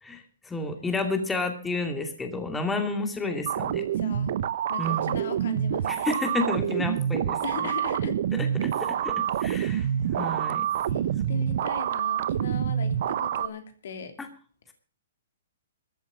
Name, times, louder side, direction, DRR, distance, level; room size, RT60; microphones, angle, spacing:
voice 1, 0.0-3.8 4.8-5.2 5.8-7.4 8.3-10.7 11.3-11.4 14.2-14.3, left 2 dB, 10° left, 5 dB, 2.4 m, -31 dB
sound 1, 3.5-13.5, right 10 dB, 60° right, 0.8 m, -27 dB
voice 2, 4.0-4.3 4.7-6.1 7.4-8.2 9.5-9.9 10.9-14.1, left 5 dB, 65° left, 7 dB, 2.9 m, -38 dB
14.5 x 7.7 x 8.6 m, 0.41 s
hypercardioid pair, 125°, 0 cm